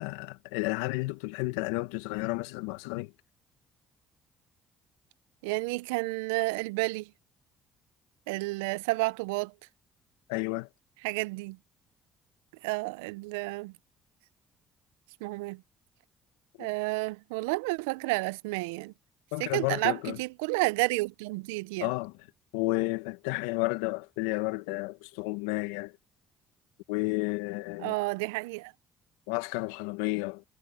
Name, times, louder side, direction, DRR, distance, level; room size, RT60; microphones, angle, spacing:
voice 1, 0.0-3.1 10.3-10.7 16.6-16.7 19.3-20.2 21.8-22.1 22.5-26.0 26.9-27.9 29.3-30.4, left 23 dB, 85° left, 1.5 m, -32 dB
voice 2, 5.4-7.1 8.3-9.5 11.0-11.6 12.6-13.7 15.2-15.6 16.6-18.9 19.4-21.9 27.8-28.7, right 24 dB, 85° right, 0.6 m, -31 dB
hypercardioid pair, 55°, 0 cm